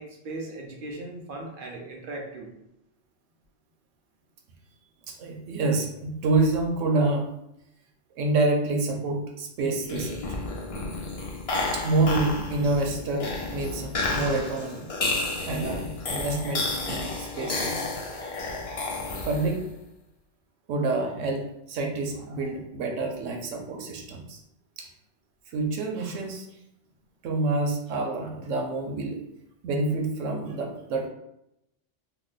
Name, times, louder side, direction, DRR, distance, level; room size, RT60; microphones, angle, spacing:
voice 1, 0.0-2.5, right 2 dB, 55° right, 0 dB, 0.7 m, -38 dB
voice 2, 5.1-7.3 8.2-10.2 11.7-14.8 15.2-17.8 18.9-19.6 20.7-24.4 24.8-24.9 25.5-26.5 27.2-29.2 29.6-31.1, right 2 dB, 90° right, 3 dB, 1.0 m, -27 dB
sound 1, 9.8-19.7, left 2 dB, 55° left, 0.4 m, -31 dB
2.9 x 2.1 x 3.8 m, 0.82 s
omnidirectional pair, 1.2 m